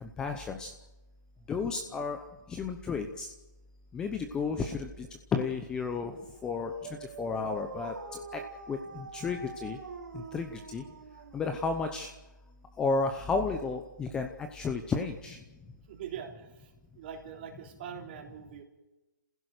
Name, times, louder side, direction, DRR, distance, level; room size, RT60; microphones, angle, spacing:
voice 1, 0.0-0.7 1.5-2.2 2.5-3.3 3.9-5.1 5.3-6.1 6.4-6.7 7.2-7.9 8.7-9.8 10.1-10.8 11.3-12.1 12.8-15.4, left 4 dB, 10° left, 6 dB, 0.7 m, -32 dB
Dog, 6.1-11.8, right 4 dB, 75° right, 4.0 m, -45 dB
voice 2, 15.9-18.6, right 8 dB, 35° right, 2 dB, 3.4 m, -43 dB
27.5 x 16.0 x 6.6 m, 1.1 s
hypercardioid pair, 165°, 10 cm